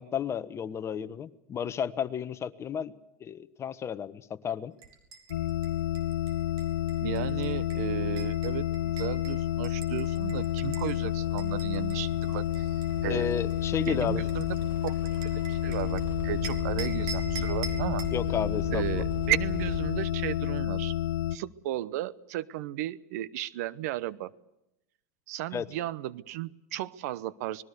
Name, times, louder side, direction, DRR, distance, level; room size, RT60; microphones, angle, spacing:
voice 1, 0.0-2.9 3.2-4.7 13.0-14.3 18.1-19.0 25.5-25.7, left 8 dB, 30° left, 14 dB, 1.2 m, -32 dB
sound 1, 4.8-11.0 11.4-16.0 16.4-18.2, right 5 dB, 50° right, 5.0 m, -45 dB
sound 2, 5.3-21.4, left 12 dB, 85° left, 0.9 m, -30 dB
sound 3, 6.4-20.8, right 6 dB, 20° right, 2.6 m, -42 dB
voice 2, 7.0-13.3 13.9-14.6 14.8-18.1 18.7-20.9 21.3-24.3 25.3-27.6, right 14 dB, 70° right, 18 dB, 0.9 m, -35 dB
26.0 x 20.5 x 6.8 m, 0.86 s
hypercardioid pair, 105°, 9 cm